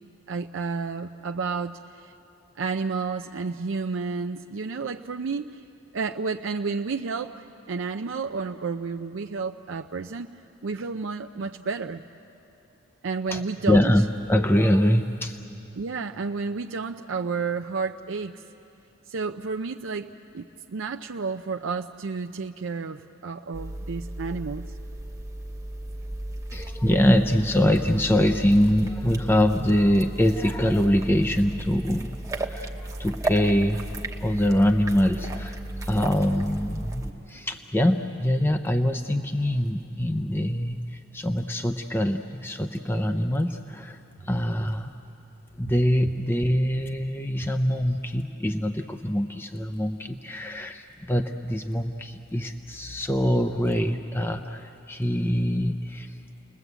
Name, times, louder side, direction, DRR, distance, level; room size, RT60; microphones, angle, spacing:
voice 1, 0.3-2.1 2.6-5.6 5.9-7.3 7.7-10.4 10.6-12.0 13.0-13.9 15.7-18.4 19.1-24.6 37.3-37.4, right 4 dB, 70° right, 5 dB, 0.5 m, -31 dB
voice 2, 13.3-15.4 26.5-33.9 34.2-45.0 45.6-56.2, equal, 10° left, 5 dB, 0.6 m, -24 dB
sound 1, 23.5-37.1, right 1 dB, 15° right, 1.0 m, -35 dB
30.0 x 21.0 x 8.1 m, 3.0 s
head